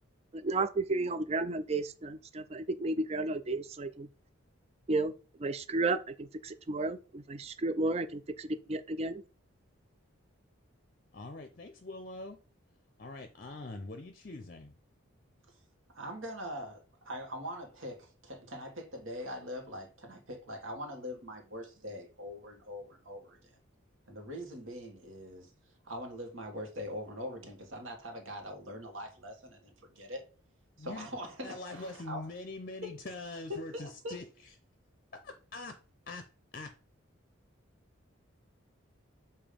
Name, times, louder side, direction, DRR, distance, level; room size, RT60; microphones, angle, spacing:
voice 1, 0.3-4.1 4.9-5.1 5.4-9.2, right 2 dB, 30° right, 0.4 m, -33 dB
voice 2, 11.1-12.4 13.0-14.7 30.8-31.1 31.4-34.2 35.2-35.8 36.1-36.2 36.5-36.7, left 2 dB, 45° left, 0.6 m, -43 dB
voice 3, 15.9-23.5 24.1-25.5 25.8-30.2 30.8-32.2 33.5-34.1, equal, 70° right, 1.5 m, -42 dB
7.0 x 2.7 x 5.1 m
head